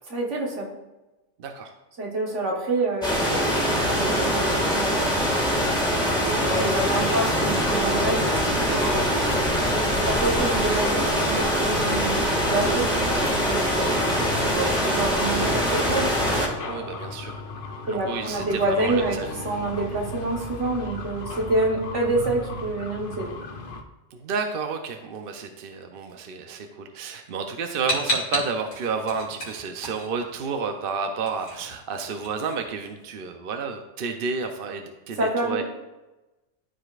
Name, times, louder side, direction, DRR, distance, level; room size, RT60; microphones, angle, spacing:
voice 1, 0.1-0.7 2.0-3.5 3.9-5.5 6.3-9.3 9.8-12.9 13.4-14.1 14.5-16.1 17.9-19.2 19.4-23.4 35.1-35.6, right 2 dB, 75° right, -1 dB, 1.7 m, -27 dB
voice 2, 1.4-1.7 10.1-10.3 13.9-14.3 14.5-14.8 16.6-17.4 17.9-19.3 24.1-35.6, right 5 dB, 55° right, 5 dB, 0.8 m, -31 dB
sound 1, 3.0-16.5, equal, 5° left, 1.5 m, -23 dB
sound 2, 6.3-23.8, left 3 dB, 50° left, 0.9 m, -37 dB
sound 3, 27.9-30.6 30.9-33.3, equal, 80° left, 2.2 m, -31 dB
13.0 x 5.0 x 2.4 m, 1.0 s
omnidirectional pair, 1.2 m